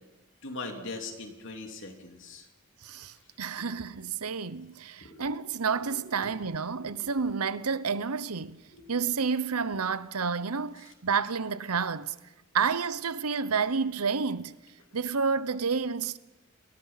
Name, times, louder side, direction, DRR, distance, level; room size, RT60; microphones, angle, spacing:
voice 1, 0.4-2.4 3.6-3.7 5.0-5.3 5.8-6.3 6.8-7.0 8.7-8.8, left 3 dB, 55° left, 3.4 m, -41 dB
voice 2, 2.8-8.6 8.9-12.1 12.5-14.5 14.9-16.2, right 5 dB, 85° right, 0.9 m, -30 dB
29.5 x 20.5 x 5.9 m
head